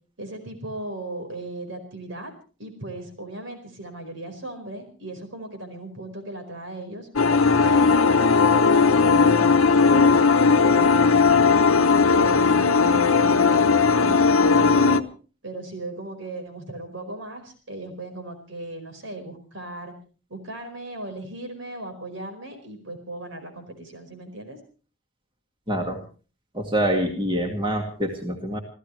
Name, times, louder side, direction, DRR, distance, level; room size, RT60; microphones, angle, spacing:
voice 1, 0.2-2.3 2.6-7.1 7.6-11.4 11.9-15.1 15.4-19.9 20.3-24.6, right 1 dB, 65° right, 7 dB, 4.8 m, -37 dB
sound 1, 7.2-15.0, left 4 dB, 90° left, 1.0 m, -17 dB
voice 2, 25.7-26.0 26.5-28.6, right 1 dB, 25° right, 2 dB, 2.2 m, -25 dB
28.5 x 15.0 x 3.2 m, 0.37 s
head